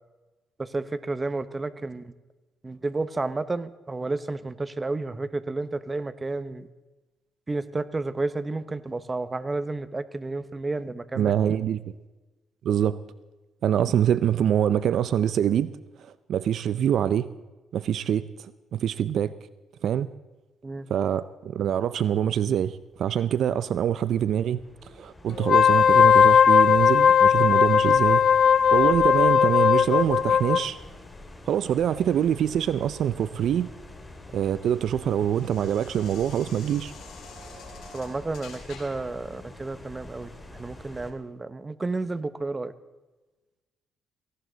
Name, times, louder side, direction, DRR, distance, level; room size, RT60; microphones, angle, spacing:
voice 1, 0.6-2.1 2.6-6.7 7.5-11.3 20.6-20.9 37.9-42.7, right 3 dB, 25° right, 14 dB, 0.9 m, -31 dB
voice 2, 11.1-11.8 12.6-13.0 13.6-15.7 16.3-17.3 17.7-18.3 18.7-19.3 19.8-20.1 20.9-24.6 25.0-28.2 28.7-30.8 31.5-33.7 34.3-36.9, right 9 dB, 70° right, 15 dB, 0.5 m, -24 dB
sound 1, 22.5-41.1, left 1 dB, 15° left, 2.6 m, -46 dB
Wind instrument woodwind instrument, 25.4-30.7, left 7 dB, 55° left, 0.4 m, -18 dB
sound 2, 33.7-39.2, left 4 dB, 80° left, 5.1 m, -49 dB
18.0 x 16.5 x 4.0 m, 1.2 s
cardioid pair, 90°, 0 cm